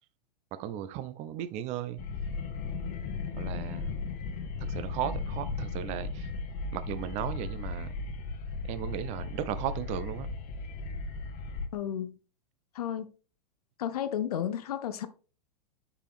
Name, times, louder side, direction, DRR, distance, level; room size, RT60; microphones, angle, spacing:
voice 1, 0.5-2.0 3.4-3.9 4.6-6.3 6.7-7.9 8.6-10.3, right 11 dB, 35° right, 0.6 m, -36 dB
sound 1, 2.0-11.7, left 4 dB, 35° left, 1.1 m, -36 dB
voice 2, 11.7-12.2 12.7-13.1 13.8-15.1, left 10 dB, 60° left, 0.7 m, -32 dB
6.7 x 4.8 x 3.5 m
figure-of-eight pair, 100°, 21 cm